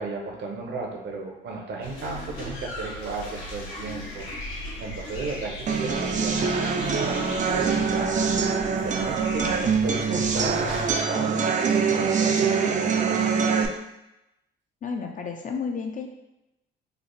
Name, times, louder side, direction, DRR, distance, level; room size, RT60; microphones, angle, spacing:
voice 1, 0.0-11.6 11.9-13.6, right 3 dB, 60° right, 1 dB, 0.8 m, -35 dB
sound 1, 1.8-11.0, left 1 dB, 80° left, 1.2 m, -38 dB
sound 2, 5.7-13.7, right 5 dB, 40° right, 0.4 m, -24 dB
voice 2, 14.8-16.1, left 5 dB, 40° left, 3 dB, 0.4 m, -31 dB
3.3 x 2.0 x 3.8 m, 0.91 s
cardioid pair, 90°, 20 cm